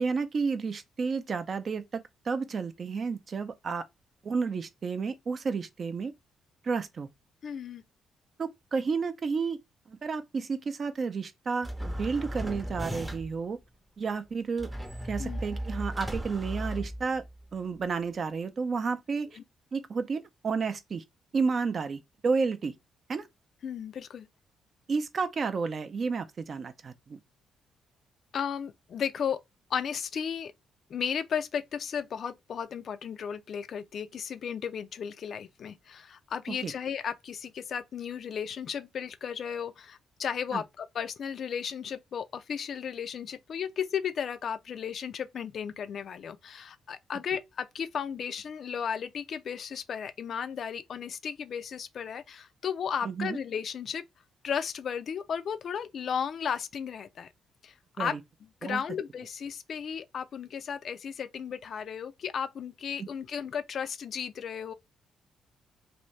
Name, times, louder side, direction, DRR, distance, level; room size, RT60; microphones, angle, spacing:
voice 1, 0.0-3.8 4.2-6.1 6.6-7.1 8.4-9.6 9.9-13.6 14.0-14.7 15.1-17.2 17.5-19.4 19.7-21.0 21.3-22.7 23.1-23.3 24.9-27.2 36.6-36.7 40.5-40.6 53.0-53.4 58.0-58.2 58.6-58.8, right 5 dB, 45° right, 0.5 m, -31 dB
voice 2, 7.4-7.8 15.2-15.4 19.3-19.4 23.6-24.3 28.3-29.4 29.7-30.5 30.9-54.0 54.4-57.3 57.6-64.7, left 7 dB, 60° left, 0.4 m, -34 dB
sound 1, 11.6-13.5 14.6-17.4, equal, 10° right, 0.7 m, -36 dB
2.7 x 2.6 x 3.1 m
cardioid pair, 80°, 0 cm